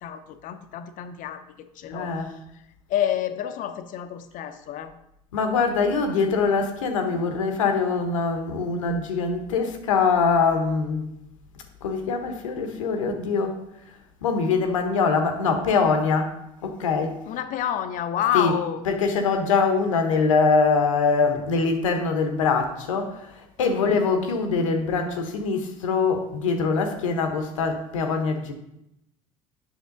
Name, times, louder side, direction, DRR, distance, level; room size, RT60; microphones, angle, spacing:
voice 1, 0.0-2.4 2.9-4.9 6.1-6.2 17.3-18.8 23.6-24.0, left 10 dB, 55° left, 9 dB, 0.8 m, -29 dB
voice 2, 1.9-2.3 5.3-11.0 11.8-13.6 14.2-16.3 16.6-17.2 18.3-18.5 18.8-23.3 23.6-28.5, left 4 dB, 85° left, 6 dB, 1.1 m, -23 dB
8.2 x 6.0 x 3.9 m, 0.82 s
hypercardioid pair, 70°, 16 cm